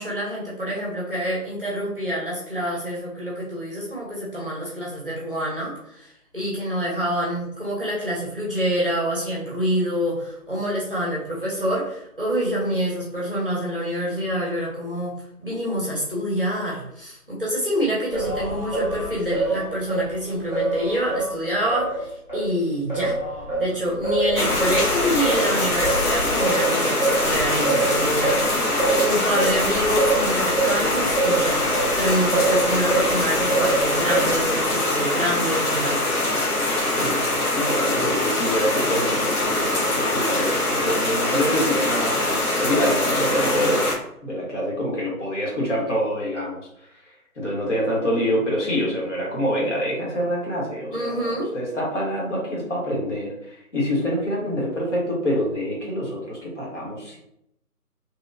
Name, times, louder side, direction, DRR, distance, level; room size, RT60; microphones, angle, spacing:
voice 1, 0.0-23.2 23.6-28.4 29.0-36.0 50.9-51.5, equal, 40° right, -5 dB, 0.7 m, -26 dB
Singing, 18.1-22.5 22.9-33.2 33.5-34.5, right 3 dB, 35° left, 0.8 m, -26 dB
sound 1, 24.4-44.0, left 1 dB, 75° left, 0.8 m, -23 dB
voice 2, 37.5-39.6 39.9-42.2 42.6-43.9 44.2-46.6 47.4-53.3 53.7-57.2, equal, 50° left, -3 dB, 1.0 m, -25 dB
2.8 x 2.1 x 2.4 m, 0.77 s
figure-of-eight pair, 165°, 46 cm